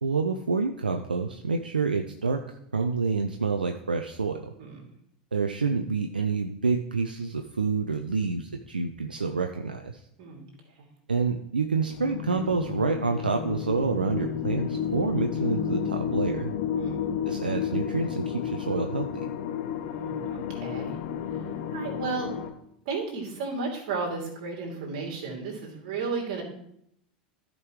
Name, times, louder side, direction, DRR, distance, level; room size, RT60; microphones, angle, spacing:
voice 1, 0.0-2.4 2.7-4.5 5.3-10.0 11.1-16.5 17.3-19.1, right 4 dB, 80° right, 5 dB, 0.5 m, -28 dB
sound 1, 11.9-22.5, left 8 dB, 55° left, 0.8 m, -31 dB
voice 2, 16.7-17.0 17.6-17.8 19.9-21.0 21.7-22.3 22.8-26.4, right 4 dB, 55° right, -2 dB, 2.7 m, -33 dB
14.0 x 5.2 x 3.1 m, 0.73 s
figure-of-eight pair, 85°, 5 cm